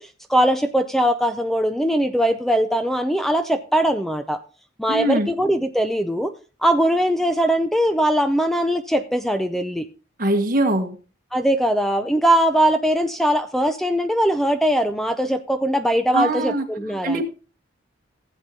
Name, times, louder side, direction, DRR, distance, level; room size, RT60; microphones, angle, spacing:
voice 1, 0.0-4.4 4.8-6.3 6.6-9.9 11.3-17.2, right 1 dB, ahead, 9 dB, 0.4 m, -21 dB
voice 2, 4.9-5.3 10.2-11.0 16.1-16.6 17.0-17.2, right 1 dB, 45° right, 4 dB, 1.5 m, -21 dB
15.5 x 8.2 x 2.7 m, 0.35 s
head